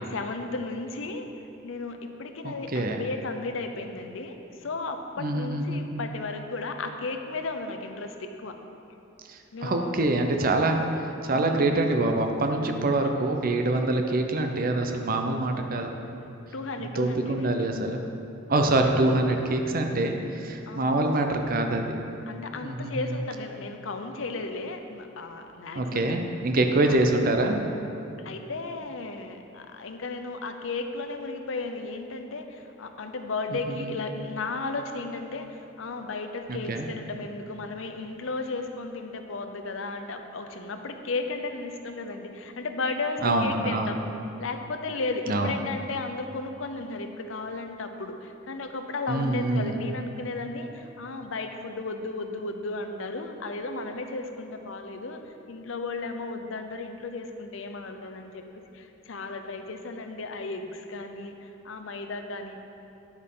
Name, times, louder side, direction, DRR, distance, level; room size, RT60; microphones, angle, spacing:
voice 1, 0.1-1.3 1.6-8.5 9.5-9.9 11.3-11.7 16.5-17.6 18.8-19.0 20.7-21.1 22.3-26.2 26.9-27.0 28.2-44.0 44.4-58.4 58.7-62.6, left 3 dB, 70° left, 6 dB, 0.7 m, -34 dB
voice 2, 2.4-3.0 5.2-6.0 9.3-10.8 11.2-15.9 16.8-18.0 18.5-21.9 22.6-23.1 25.7-27.6 33.8-33.9 36.5-36.9 43.2-43.9 45.3-45.5 49.1-49.8, right 2 dB, 45° right, 4 dB, 0.7 m, -25 dB
9.7 x 8.0 x 3.8 m, 2.9 s
head